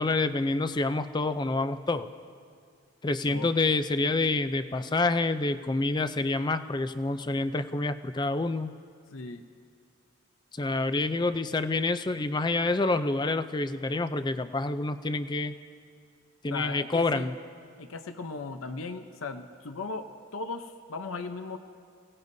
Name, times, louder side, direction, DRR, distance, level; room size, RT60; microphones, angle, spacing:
voice 1, 0.0-2.1 3.0-8.8 10.5-15.6 16.4-17.3, left 2 dB, 20° left, 11 dB, 0.4 m, -27 dB
voice 2, 9.1-9.4 16.5-17.4 17.8-21.6, left 4 dB, 80° left, 8 dB, 0.7 m, -37 dB
28.5 x 17.5 x 2.7 m, 2.2 s
head